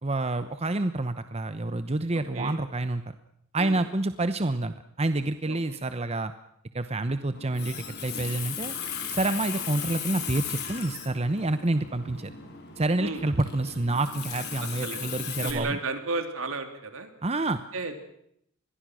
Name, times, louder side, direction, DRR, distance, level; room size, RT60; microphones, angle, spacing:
voice 1, 0.0-3.0 3.5-6.3 6.7-8.7 9.1-12.3 12.8-15.8 17.2-17.6, right 2 dB, 30° right, 11 dB, 0.9 m, -28 dB
voice 2, 2.1-2.6 3.6-3.8 5.5-5.8 9.5-9.6 13.0-13.3 14.6-17.1 17.7-18.0, right 3 dB, 70° right, 7 dB, 3.3 m, -34 dB
Water tap faucet, 7.3-15.5, left 7 dB, 50° left, 4.5 m, -37 dB
26.5 x 21.5 x 6.3 m, 0.71 s
head